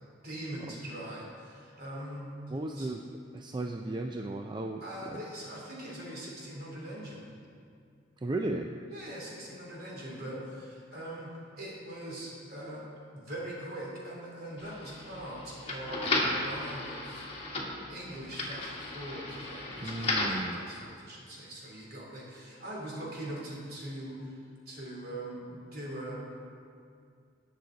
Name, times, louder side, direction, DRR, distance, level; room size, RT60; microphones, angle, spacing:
voice 1, 0.2-2.3 2.7-2.9 4.8-7.3 8.9-12.9 13.1-17.2 17.9-24.3 24.7-26.2, right 1 dB, 60° right, -4 dB, 3.0 m, -42 dB
voice 2, 2.5-3.0 3.3-5.2 8.2-8.7 19.8-20.7, right 2 dB, 25° right, 3 dB, 0.4 m, -35 dB
sound 1, 14.6-20.5, left 2 dB, 35° left, 1.6 m, -34 dB
19.0 x 6.5 x 3.9 m, 2.3 s
head